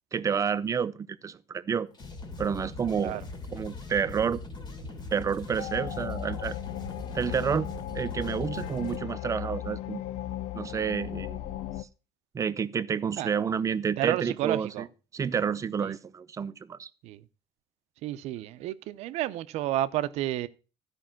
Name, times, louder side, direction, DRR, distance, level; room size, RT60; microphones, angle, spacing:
voice 1, 0.1-1.9 2.4-3.2 3.5-4.4 5.1-6.6 7.1-10.0 10.5-11.4 12.3-14.9 15.1-16.9, right 7 dB, 30° right, 0.6 m, -29 dB
sound 1, 1.9-9.0, left 3 dB, 40° left, 2.1 m, -41 dB
sound 2, 5.6-11.8, left 13 dB, 70° left, 0.5 m, -36 dB
voice 2, 14.0-14.8 15.8-15.9 17.0-17.3 18.0-20.5, right 14 dB, 75° right, 0.7 m, -31 dB
13.0 x 5.3 x 5.9 m
cardioid pair, 115°, 11 cm